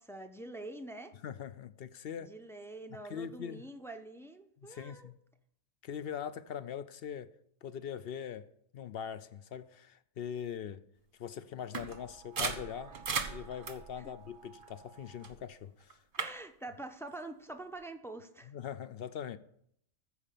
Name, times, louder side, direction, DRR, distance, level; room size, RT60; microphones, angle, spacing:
voice 1, 0.0-1.1 2.2-5.1 14.0-14.1 16.2-18.5, right 2 dB, 5° left, 0.4 m, -46 dB
voice 2, 1.2-2.3 2.9-3.7 4.6-5.2 5.8-7.3 7.6-10.8 11.2-13.0 13.3-16.0 18.5-19.4, left 8 dB, 60° left, 0.7 m, -42 dB
sound 1, 11.7-15.4 15.8-16.3, right 5 dB, 40° right, 1.1 m, -39 dB
14.5 x 4.8 x 6.7 m
omnidirectional pair, 1.4 m